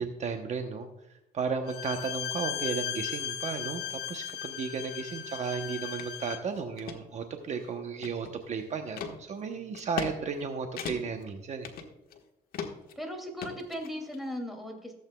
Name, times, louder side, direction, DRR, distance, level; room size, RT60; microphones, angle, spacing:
voice 1, 0.0-11.7, right 5 dB, 45° right, 5 dB, 0.9 m, -34 dB
Bowed string instrument, 1.7-6.5, left 11 dB, 80° left, 0.8 m, -36 dB
sound 1, 6.0-6.1 6.6-7.0 7.5-8.5 9.0-9.1 9.7-10.1 10.4-10.5 10.8-11.2 11.6-12.2 12.5-12.9 13.4-14.2, left 6 dB, 60° left, 1.4 m, -38 dB
voice 2, 13.0-14.9, equal, ahead, 2 dB, 2.6 m, -37 dB
15.5 x 8.1 x 2.3 m, 0.93 s
cardioid pair, 110°, 17 cm